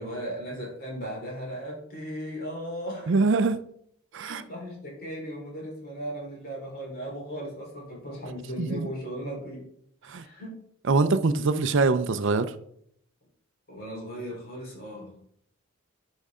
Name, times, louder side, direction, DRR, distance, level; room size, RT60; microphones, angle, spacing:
voice 1, 0.0-3.2 4.2-9.7 10.1-10.6 13.7-15.2, equal, 45° left, -2 dB, 3.5 m, -37 dB
voice 2, 3.1-3.6 4.1-4.4 8.6-8.9 10.0-10.2 10.9-12.5, right 3 dB, 60° right, 12 dB, 0.5 m, -23 dB
10.0 x 5.4 x 3.6 m, 0.67 s
head